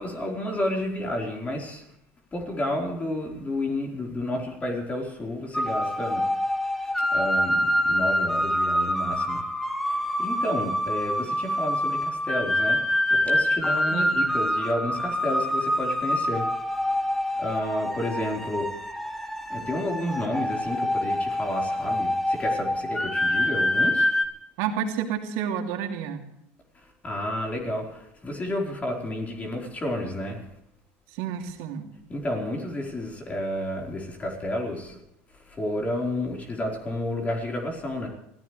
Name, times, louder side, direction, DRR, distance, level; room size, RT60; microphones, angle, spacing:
voice 1, 0.0-1.9 2.3-6.3 7.1-9.4 9.9-12.8 13.1-16.5 16.7-17.0 17.4-18.8 19.5-24.1 27.0-30.4 32.1-35.0 35.5-38.1, left 1 dB, 20° left, 1 dB, 4.6 m, -31 dB
sound 1, 5.5-24.3, left 1 dB, 5° left, 2.0 m, -26 dB
voice 2, 13.9-14.3 24.6-26.2 31.1-31.9, right 8 dB, 75° right, 3 dB, 3.0 m, -30 dB
25.0 x 15.5 x 3.4 m, 0.82 s
supercardioid pair, 95°, 6 cm